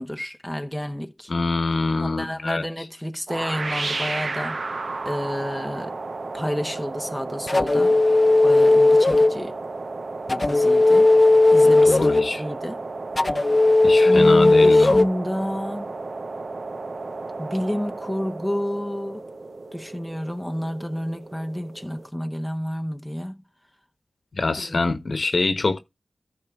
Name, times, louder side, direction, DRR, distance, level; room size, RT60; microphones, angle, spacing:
voice 1, 0.0-1.3 2.0-4.6 5.0-5.9 6.3-8.0 8.4-9.6 10.3-11.1 11.5-12.8 14.0-15.9 17.4-19.2 19.7-23.4 24.6-24.8, equal, 5° left, 0.8 m, -30 dB
voice 2, 1.3-2.7 11.6-12.4 13.8-15.0 24.4-25.8, left 3 dB, 60° left, 1.1 m, -24 dB
sound 1, 3.3-22.1, right 3 dB, 60° right, 0.7 m, -33 dB
sound 2, 7.5-9.4 10.3-12.3 13.2-15.0, left 2 dB, 35° left, 0.4 m, -16 dB
14.0 x 4.8 x 3.6 m
wide cardioid pair, 80°, 0 cm